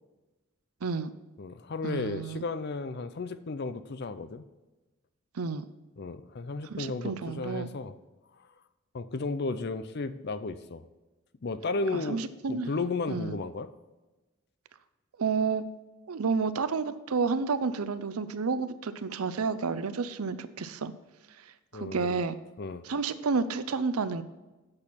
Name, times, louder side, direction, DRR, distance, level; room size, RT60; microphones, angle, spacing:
voice 1, 0.8-1.1 1.8-2.4 5.3-5.7 6.7-7.7 11.9-12.7 13.1-13.4 15.2-15.6 16.1-20.9 21.7-22.4 22.8-24.2, right 5 dB, 85° right, 13 dB, 0.6 m, -30 dB
voice 2, 1.4-4.4 6.0-7.9 8.9-10.9 11.4-12.2 12.5-13.7 21.7-22.2 22.6-22.8, left 3 dB, 50° left, 13 dB, 0.5 m, -34 dB
8.8 x 6.3 x 5.7 m, 1.1 s
head